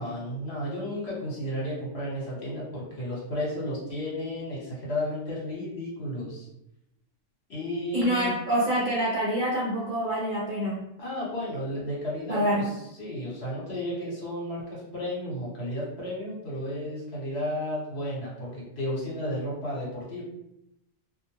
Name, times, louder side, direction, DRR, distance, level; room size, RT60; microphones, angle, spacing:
voice 1, 0.0-6.5 7.5-8.4 11.0-20.2, left 1 dB, 60° left, -6 dB, 1.2 m, -33 dB
voice 2, 7.9-10.8 12.3-12.7, right 1 dB, 50° right, -6 dB, 0.6 m, -26 dB
2.4 x 2.1 x 3.0 m, 0.82 s
omnidirectional pair, 1.3 m